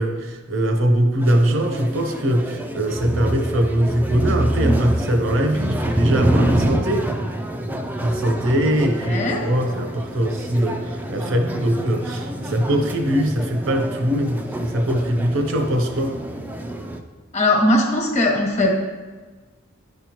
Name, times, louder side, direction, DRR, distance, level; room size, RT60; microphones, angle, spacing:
voice 1, 0.0-7.1 8.0-16.2, equal, 70° right, 5 dB, 0.9 m, -21 dB
sound 1, 1.2-17.0, right 1 dB, 10° right, 0.4 m, -26 dB
voice 2, 9.0-9.5 17.3-18.7, left 1 dB, 35° left, 1 dB, 1.2 m, -19 dB
10.5 x 5.5 x 3.0 m, 1.4 s
head